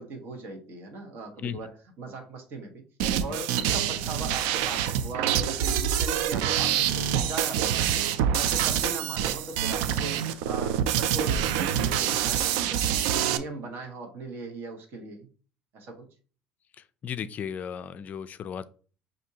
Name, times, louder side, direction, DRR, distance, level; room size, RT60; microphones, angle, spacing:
voice 1, 0.0-2.8 3.2-8.0 8.4-12.8 13.1-15.3 15.7-16.0, right 3 dB, 50° right, 1.3 m, -39 dB
sound 1, 3.0-13.4, right 9 dB, 85° right, 0.4 m, -26 dB
voice 2, 17.0-18.7, left 8 dB, 35° left, 0.4 m, -35 dB
6.0 x 2.6 x 2.8 m
cardioid pair, 125°, 4 cm